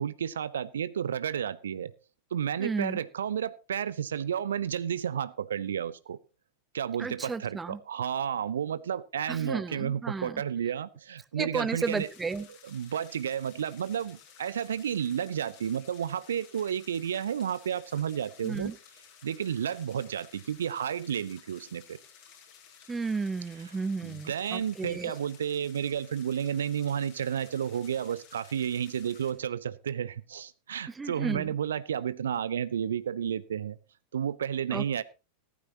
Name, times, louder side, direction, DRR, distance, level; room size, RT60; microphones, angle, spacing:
voice 1, 0.0-1.9 2.3-6.2 6.7-12.1 12.7-18.7 19.2-22.0 24.0-33.8 34.1-35.0, right 8 dB, 65° right, 18 dB, 0.6 m, -32 dB
voice 2, 2.6-3.0 7.0-7.8 9.3-10.4 11.4-12.5 18.4-18.7 22.9-25.2 30.9-31.5 34.7-35.0, right 4 dB, 15° right, 17 dB, 0.7 m, -33 dB
sound 1, 11.8-29.3, left 7 dB, 45° left, 4.4 m, -55 dB
15.0 x 13.0 x 2.9 m, 0.30 s
figure-of-eight pair, 90°, 0 cm